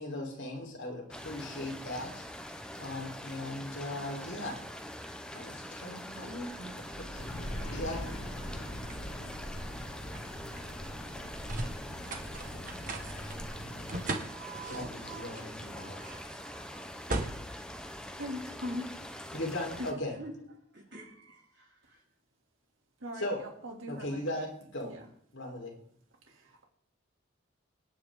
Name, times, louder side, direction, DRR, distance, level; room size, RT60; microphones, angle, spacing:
voice 1, 0.0-2.2 2.8-4.6 5.3-7.4 7.6-8.2 14.6-16.0 19.3-20.2 23.1-23.4 23.9-24.9 25.3-25.7, left 1 dB, 65° left, -1 dB, 4.1 m, -38 dB
sound 1, 1.1-19.9, left 1 dB, 5° left, 0.9 m, -44 dB
sound 2, 6.4-18.7, right 2 dB, 40° right, 1.6 m, -42 dB
sound 3, 7.1-14.2, equal, 90° left, 3.2 m, -42 dB
voice 2, 18.2-19.0 20.2-20.3 20.7-22.0, left 1 dB, 55° right, -3 dB, 6.9 m, -41 dB
voice 3, 23.0-24.3 24.8-25.0 26.2-26.6, right 1 dB, 80° right, 1 dB, 2.9 m, -45 dB
25.5 x 9.6 x 3.9 m, 0.64 s
head